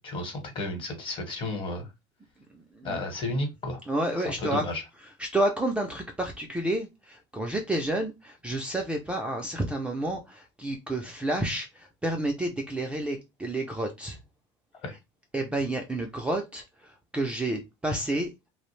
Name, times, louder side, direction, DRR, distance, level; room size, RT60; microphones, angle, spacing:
voice 1, 0.0-1.9 2.8-3.8 4.2-4.8 14.8-14.9, left 2 dB, 35° left, 1.0 m, -32 dB
voice 2, 3.9-4.6 5.2-14.2 15.3-16.6 17.1-18.3, right 1 dB, 10° right, 0.3 m, -30 dB
2.4 x 2.0 x 3.0 m
supercardioid pair, 120°, 14 cm